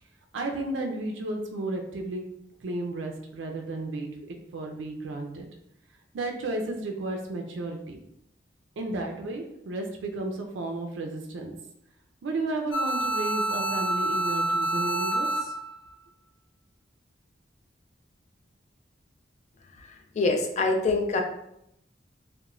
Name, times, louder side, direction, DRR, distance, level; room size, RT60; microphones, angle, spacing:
voice 1, 0.3-2.2 2.6-5.5 6.1-8.0 8.8-11.5 12.2-15.5, right 2 dB, 80° right, 2 dB, 0.4 m, -33 dB
sound 1, 12.7-15.7, right 2 dB, 80° left, 0.7 m, -27 dB
voice 2, 20.1-21.2, left 3 dB, 40° left, 4 dB, 0.3 m, -24 dB
3.0 x 2.1 x 2.4 m, 0.78 s
head